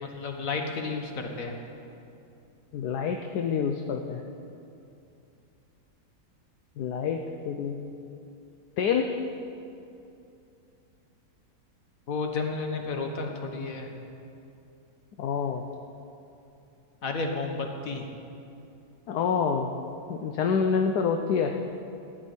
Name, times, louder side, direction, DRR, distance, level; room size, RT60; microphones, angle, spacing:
voice 1, 0.0-1.6 12.1-13.9 17.0-18.1, left 4 dB, 55° left, 3 dB, 1.7 m, -32 dB
voice 2, 2.7-4.2 6.8-7.8 8.8-9.2 15.2-15.6 19.1-19.7 20.1-21.5, left 6 dB, 75° left, 4 dB, 1.3 m, -27 dB
15.5 x 6.4 x 9.8 m, 2.7 s
omnidirectional pair, 1.8 m